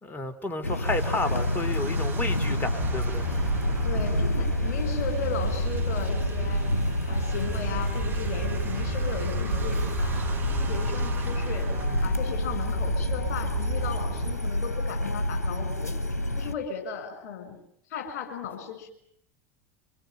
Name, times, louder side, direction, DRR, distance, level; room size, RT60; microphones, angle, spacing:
voice 1, 0.0-3.3 11.9-12.1, left 2 dB, 20° left, 8 dB, 3.7 m, -31 dB
sound 1, 0.6-16.5, left 1 dB, 90° left, 1.0 m, -29 dB
sound 2, 0.8-12.9, right 5 dB, 25° right, 5.7 m, -43 dB
sound 3, 2.8-14.4, right 4 dB, 55° right, 4.0 m, -34 dB
voice 2, 3.8-6.7 7.1-10.3 10.6-11.7 12.0-15.9 16.4-17.6 17.9-18.9, left 6 dB, 60° left, 6 dB, 7.4 m, -36 dB
25.5 x 22.0 x 9.6 m, 0.72 s
figure-of-eight pair, 80°, 8 cm